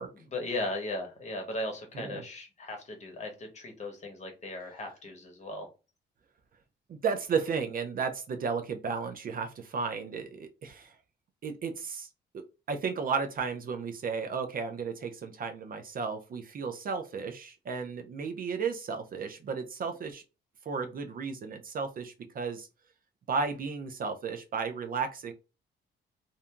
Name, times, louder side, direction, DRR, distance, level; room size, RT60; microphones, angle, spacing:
voice 1, 0.2-5.7, left 2 dB, 35° left, 4 dB, 1.0 m, -37 dB
voice 2, 6.9-10.9 11.4-12.1 12.3-20.2 20.7-22.7 23.3-25.3, right 5 dB, 45° right, 7 dB, 0.5 m, -34 dB
2.6 x 2.5 x 2.3 m, 0.30 s
cardioid pair, 90°, 20 cm